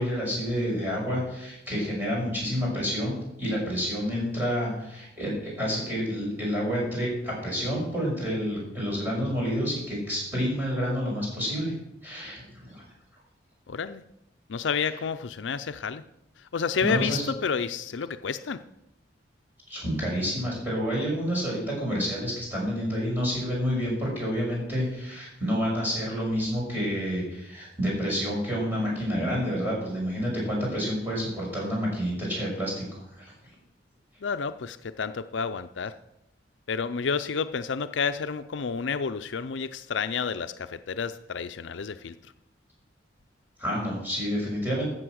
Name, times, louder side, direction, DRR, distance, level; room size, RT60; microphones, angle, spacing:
voice 1, 0.0-11.7 12.0-12.8 16.8-17.2 19.7-33.3 43.6-44.9, equal, 10° right, -4 dB, 6.1 m, -29 dB
voice 2, 13.7-14.0 14.5-16.0 16.5-18.6 34.2-35.9 36.7-42.1, left 5 dB, 75° left, 11 dB, 0.5 m, -30 dB
13.5 x 7.7 x 6.4 m, 0.82 s
head